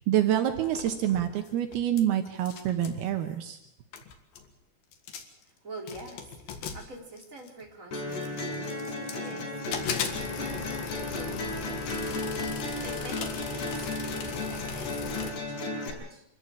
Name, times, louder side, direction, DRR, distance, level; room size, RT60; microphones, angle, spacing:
voice 1, 0.1-3.6, right 11 dB, 75° right, 6 dB, 3.1 m, -27 dB
sound 1, 0.5-2.0 2.3-3.0 3.7-3.8 3.9-4.5 4.9-5.4 5.9-7.6 8.2-9.3 9.7-15.3, left 6 dB, 65° left, 3.5 m, -38 dB
voice 2, 5.4-9.8 10.3-11.8 12.8-16.2, right 2 dB, 20° right, -1 dB, 4.5 m, -46 dB
sound 2, 7.9-15.9, left 2 dB, 90° left, 7.2 m, -34 dB
26.0 x 14.5 x 8.8 m, 0.80 s
omnidirectional pair, 4.7 m